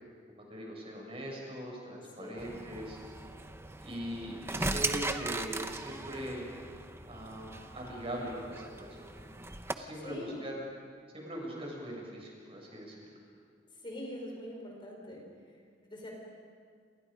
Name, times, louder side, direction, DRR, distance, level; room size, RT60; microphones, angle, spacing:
voice 1, 0.3-3.0 3.8-6.5 7.1-9.5 9.7-10.6 11.1-13.2, right 1 dB, 35° right, -2 dB, 7.1 m, -41 dB
voice 2, 2.2-2.6 10.0-10.4 13.7-16.1, left 1 dB, 25° left, -1 dB, 4.5 m, -44 dB
sound 1, 2.4-9.7, right 2 dB, 15° right, 1.0 m, -38 dB
28.5 x 28.5 x 5.3 m, 2.1 s
head